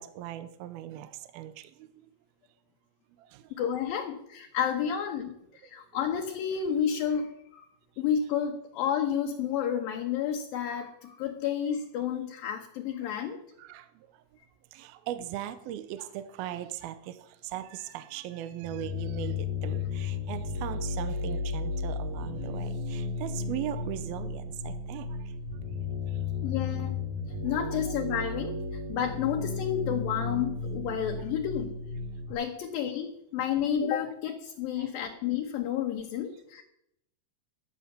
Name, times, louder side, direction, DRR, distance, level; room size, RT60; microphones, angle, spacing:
voice 1, 0.0-2.1 3.2-3.5 13.0-13.1 13.6-14.1 14.7-25.3 26.1-26.2 27.7-27.8 34.8-34.9, right 12 dB, 75° right, 11 dB, 2.3 m, -39 dB
voice 2, 3.6-5.3 5.6-7.7 8.0-13.4 26.4-27.0 27.4-31.8 32.3-36.6, left 8 dB, 70° left, 2 dB, 2.5 m, -31 dB
sound 1, 18.6-32.3, left 4 dB, 55° right, 2.5 m, -34 dB
14.0 x 9.8 x 6.7 m, 0.78 s
omnidirectional pair, 5.0 m